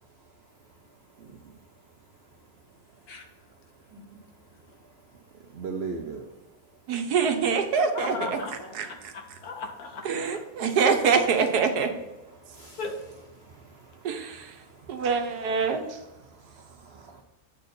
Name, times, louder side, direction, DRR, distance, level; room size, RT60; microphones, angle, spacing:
voice 1, 1.2-1.5 5.5-6.3 12.3-13.0 13.4-15.1 16.2-17.2, right 4 dB, 60° right, 3 dB, 0.7 m, -41 dB
voice 2, 6.9-8.4 8.7-9.1 10.0-11.9 14.0-14.5 14.9-15.8, right 5 dB, 75° right, 6 dB, 1.4 m, -25 dB
voice 3, 7.9-10.3 10.8-10.9 12.8-13.0, left 4 dB, 70° left, 3 dB, 1.6 m, -37 dB
8.5 x 4.2 x 5.3 m, 1.1 s
omnidirectional pair, 1.7 m